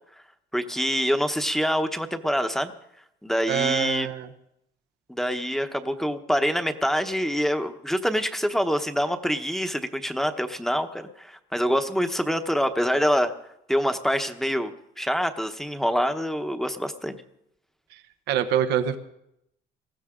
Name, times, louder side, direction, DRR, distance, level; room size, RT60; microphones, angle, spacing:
voice 1, 0.5-2.7 3.2-4.1 5.1-13.3 13.7-14.7 15.0-17.2, equal, ahead, 8 dB, 1.0 m, -25 dB
voice 2, 3.5-4.3 17.9-18.0 18.3-19.0, right 9 dB, 85° right, 10 dB, 1.1 m, -25 dB
19.5 x 14.5 x 3.8 m, 0.79 s
cardioid pair, 110°, 17 cm